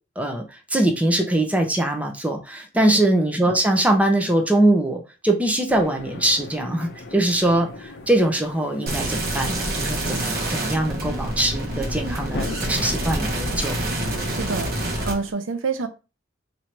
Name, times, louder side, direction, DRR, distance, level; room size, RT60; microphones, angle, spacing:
voice 1, 0.7-13.8, right 1 dB, 5° right, 3 dB, 0.6 m, -22 dB
sound 1, 5.7-15.3, left 3 dB, 65° left, 0.6 m, -39 dB
sound 2, 8.9-15.1, right 1 dB, 55° right, 1.0 m, -27 dB
voice 2, 14.2-14.7 15.0-15.9, right 4 dB, 75° right, 9 dB, 0.5 m, -27 dB
3.0 x 2.6 x 4.3 m, 0.31 s
head